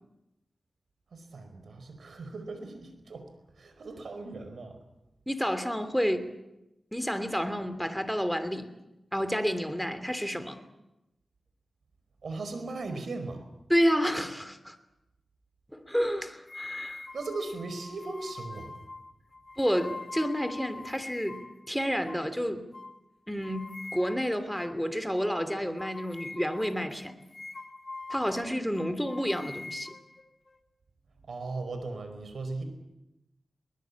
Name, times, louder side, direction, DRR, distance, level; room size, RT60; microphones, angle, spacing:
voice 1, 1.1-3.3 3.5-4.8 12.2-13.4 17.1-18.7 31.2-32.6, right 3 dB, 80° right, 8 dB, 4.8 m, -38 dB
voice 2, 5.3-6.3 6.9-8.7 9.1-10.6 13.7-14.8 15.7-17.0 19.6-21.4 21.7-22.7 23.3-27.1 28.1-29.9, equal, ahead, 10 dB, 3.0 m, -30 dB
sound 1, 16.5-21.6 22.1-22.3 22.7-22.9 23.4-24.3 24.6-24.8 25.2-25.3 25.8-28.5 28.8-30.6, left 2 dB, 45° left, 1.9 m, -43 dB
22.0 x 20.0 x 8.6 m, 0.91 s
cardioid pair, 60°, 0 cm